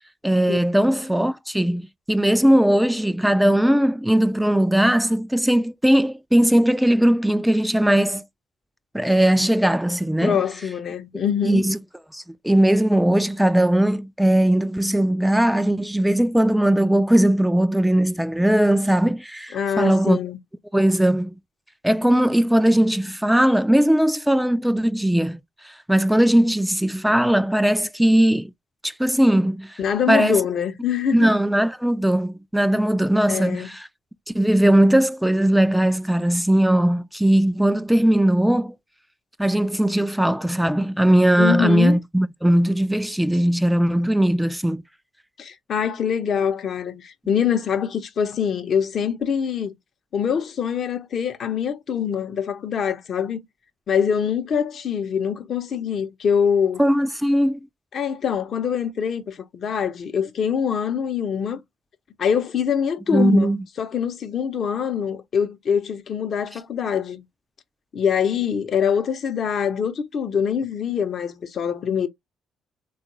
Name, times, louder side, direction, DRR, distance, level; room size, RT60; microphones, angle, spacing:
voice 1, 0.2-8.2 8.9-10.4 11.4-11.8 12.1-20.2 20.7-21.3 21.8-28.5 28.8-29.8 30.1-30.4 31.1-33.9 34.3-38.7 39.4-44.8 56.8-57.6 63.1-63.6, right 1 dB, 5° right, 0.3 m, -19 dB
voice 2, 10.2-11.7 19.5-20.4 29.8-31.3 33.3-33.7 41.4-42.0 45.4-49.8 50.1-53.4 53.9-56.8 57.9-61.6 62.2-63.5 63.8-67.2 67.9-72.1, left 7 dB, 55° left, 0.7 m, -24 dB
3.7 x 2.4 x 2.9 m
hypercardioid pair, 55°, 0 cm